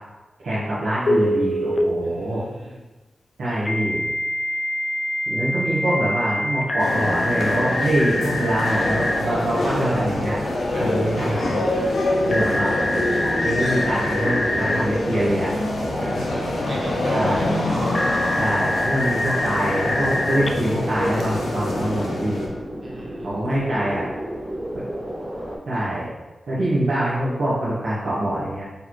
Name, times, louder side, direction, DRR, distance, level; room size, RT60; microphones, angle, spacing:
voice 1, 0.4-2.4 3.4-4.0 5.3-10.4 10.8-11.6 12.3-15.6 16.7-17.5 18.4-22.5 23.2-24.1 24.7-24.8 25.6-26.1 26.5-28.6, right 1 dB, 90° right, -10 dB, 1.0 m, -24 dB
Telephone, 1.1-1.8 3.6-9.2 12.3-14.8 17.9-20.5, left 1 dB, 35° left, 0.3 m, -25 dB
voice 2, 2.0-2.8 7.8-7.9 10.7-11.2 16.0-17.5 19.1-19.5 22.8-23.4, right 1 dB, 50° right, -4 dB, 0.7 m, -35 dB
sound 1, 6.8-22.5, left 2 dB, 80° left, 0.6 m, -26 dB
sound 2, 8.8-25.6, equal, 5° right, 1.1 m, -31 dB
4.2 x 3.4 x 3.0 m, 1.1 s
wide cardioid pair, 130°, 0 cm